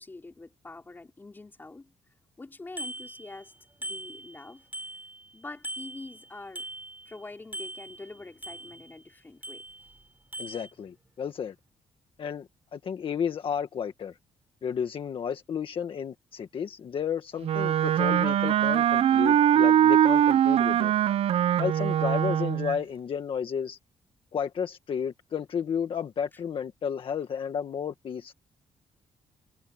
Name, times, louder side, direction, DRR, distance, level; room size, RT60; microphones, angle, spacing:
voice 1, 0.0-1.9 2.4-3.5 3.8-4.7 5.3-6.7 7.1-9.6, left 3 dB, 15° left, 3.6 m, -45 dB
Bicycle bell, 2.8-3.5 3.8-5.3 5.6-7.2 7.5-9.0 9.4-10.0 10.3-10.7, right 1 dB, 15° right, 3.3 m, -41 dB
voice 2, 10.4-11.5 12.2-14.1 14.6-20.9 21.6-23.8 24.3-28.3, left 7 dB, 50° left, 1.6 m, -32 dB
Wind instrument woodwind instrument, 17.4-22.8, right 10 dB, 55° right, 0.5 m, -22 dB
cardioid pair, 150°, 12 cm